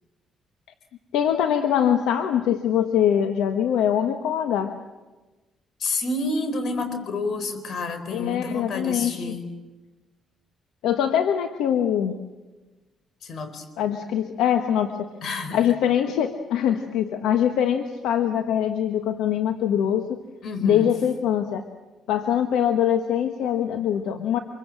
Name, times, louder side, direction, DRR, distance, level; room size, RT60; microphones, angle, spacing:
voice 1, 1.1-4.7 8.1-9.3 10.8-12.2 13.8-15.1 15.5-20.2 20.6-21.6 22.1-24.4, left 9 dB, 90° left, 6 dB, 1.3 m, -23 dB
voice 2, 5.8-9.5 13.2-13.7 15.2-15.6 20.4-20.9, left 2 dB, 60° left, 9 dB, 4.3 m, -29 dB
26.0 x 23.5 x 7.6 m, 1.2 s
cardioid pair, 90°, 0 cm